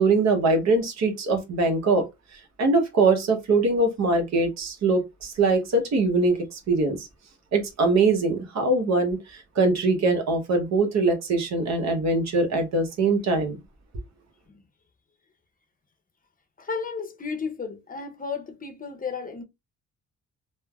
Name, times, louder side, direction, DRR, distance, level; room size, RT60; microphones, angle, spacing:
voice 1, 0.0-2.0 2.6-7.1 7.5-13.6, right 3 dB, 60° right, 0.9 m, -22 dB
voice 2, 16.6-19.4, left 5 dB, 30° left, 0.7 m, -33 dB
3.2 x 2.1 x 2.2 m
cardioid pair, 90°, 30 cm